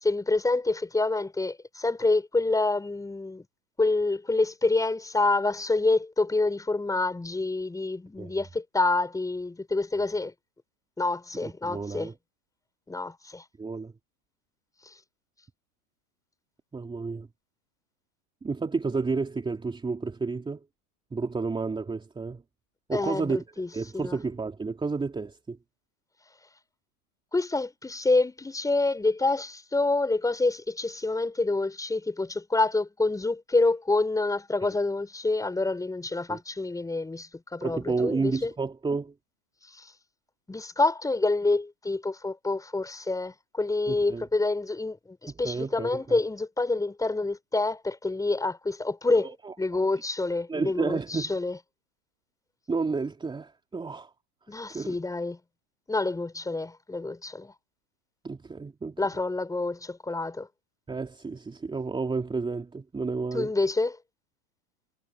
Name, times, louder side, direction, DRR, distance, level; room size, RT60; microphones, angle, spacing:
voice 1, 0.0-3.4 3.8-10.3 11.0-12.1 12.9-13.4 22.9-24.2 27.3-38.5 39.7-39.9 40.5-51.6 54.5-55.4 55.9-57.5 59.0-60.5 63.3-64.0, left 3 dB, 10° left, 6.0 m, -27 dB
voice 2, 11.4-12.1 13.6-13.9 16.7-17.3 18.4-20.7 21.1-22.4 22.9-23.4 23.7-25.6 36.3-36.4 37.6-39.1 43.9-44.3 45.4-46.2 49.2-49.5 50.5-51.3 52.7-54.1 54.7-54.9 58.2-59.0 60.9-63.5, right 4 dB, 10° right, 3.4 m, -31 dB
hypercardioid pair, 125°, 43 cm